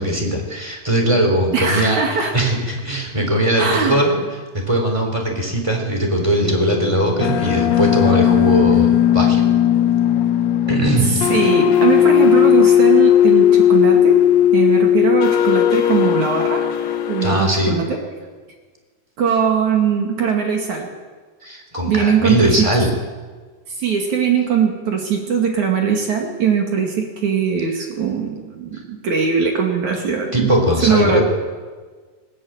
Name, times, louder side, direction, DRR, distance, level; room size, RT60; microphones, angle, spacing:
voice 1, 0.0-4.2 4.5-9.4 10.7-11.4 17.2-17.8 21.4-22.9 30.3-31.2, right 1 dB, 10° right, 3 dB, 2.9 m, -19 dB
voice 2, 1.5-2.3 3.6-4.0 11.3-14.2 14.5-16.6 17.1-18.0 19.2-20.9 21.9-22.7 23.8-30.5 30.8-31.2, right 6 dB, 50° right, 2 dB, 3.3 m, -20 dB
sound 1, 6.4-17.4, left 11 dB, 70° left, 1.7 m, -16 dB
20.0 x 19.0 x 9.0 m, 1.4 s
omnidirectional pair, 4.7 m